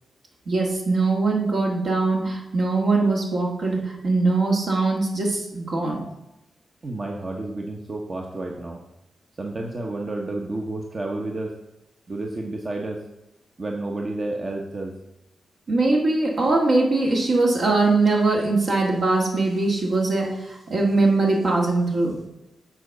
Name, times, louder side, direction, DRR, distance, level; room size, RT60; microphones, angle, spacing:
voice 1, 0.5-6.0 15.7-22.2, right 3 dB, 70° right, -1 dB, 1.9 m, -21 dB
voice 2, 6.8-8.8 9.4-11.5 12.1-13.0 13.6-14.9, right 2 dB, 45° right, 0 dB, 0.9 m, -30 dB
7.5 x 4.1 x 6.5 m, 0.93 s
cardioid pair, 55°, 0 cm